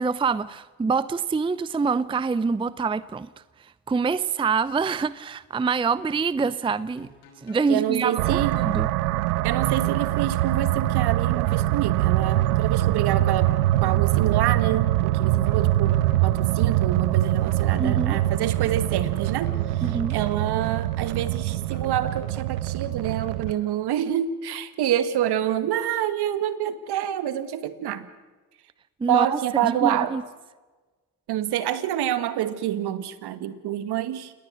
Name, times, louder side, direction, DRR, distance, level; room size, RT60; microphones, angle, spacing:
voice 1, 0.0-3.3 3.9-7.1 7.4-8.9 17.8-18.2 19.8-20.2 29.0-30.2, right 5 dB, 10° right, 0.6 m, -25 dB
sound 1, 7.0-8.4 9.2-10.3 11.0-12.4 13.2-14.3 15.0-16.4 17.2-18.3 19.0-20.4 21.2-22.3 23.0-23.6, equal, 90° left, 5.6 m, -49 dB
voice 2, 7.7-8.6 9.4-13.5 13.8-28.1 29.1-30.2 31.3-34.3, right 11 dB, 60° right, 2.0 m, -27 dB
sound 2, 8.2-23.5, right 15 dB, 85° right, 0.8 m, -23 dB
28.5 x 19.5 x 6.5 m
hypercardioid pair, 70°, 45 cm